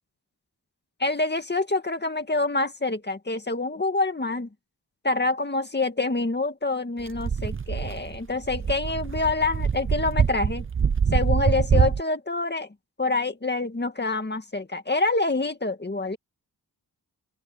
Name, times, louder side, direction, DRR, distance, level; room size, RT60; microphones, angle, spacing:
voice 1, 1.0-4.5 5.0-10.7 11.1-12.7 13.0-16.2, left 3 dB, 25° left, 2.0 m, -26 dB
sound 1, 7.1-12.0, right 6 dB, 30° right, 0.6 m, -24 dB
open air
wide cardioid pair, 110°, 39 cm